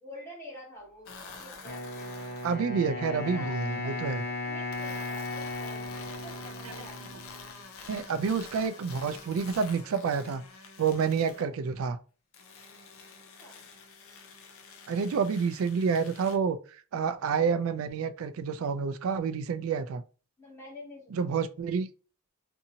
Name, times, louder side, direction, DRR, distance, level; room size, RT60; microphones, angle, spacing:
voice 1, 0.0-2.4 2.9-7.1 11.2-11.5 13.4-13.6 20.4-21.3, equal, 10° left, 0.9 m, -48 dB
sound 1, 1.1-2.6 4.7-11.5 12.3-16.4, left 4 dB, 85° left, 0.5 m, -48 dB
Wind instrument woodwind instrument, 1.6-7.6, left 2 dB, 50° left, 0.9 m, -36 dB
voice 2, 2.4-4.2 7.9-10.4 10.8-12.0 14.9-16.6 16.9-20.0 21.1-21.9, right 5 dB, 80° right, 0.3 m, -28 dB
2.7 x 2.6 x 2.7 m
head